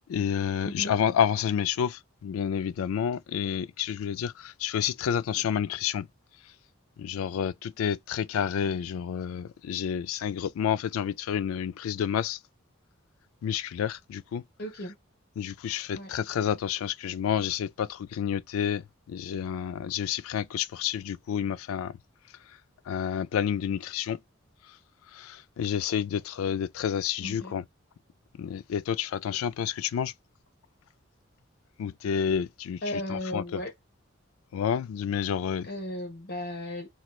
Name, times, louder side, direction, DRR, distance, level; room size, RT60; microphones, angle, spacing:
voice 1, 0.1-6.1 6.4-6.5 7.0-12.4 13.4-14.4 15.4-22.0 22.5-22.6 22.9-24.2 24.6-24.8 25.1-27.6 28.4-30.1 31.8-33.6 34.5-35.7, left 8 dB, 85° left, 0.3 m, -29 dB
voice 2, 0.6-0.9 14.6-14.9 15.9-16.1 27.2-27.5 32.8-33.7 35.7-36.9, left 1 dB, 45° left, 1.1 m, -35 dB
3.0 x 2.4 x 3.0 m
head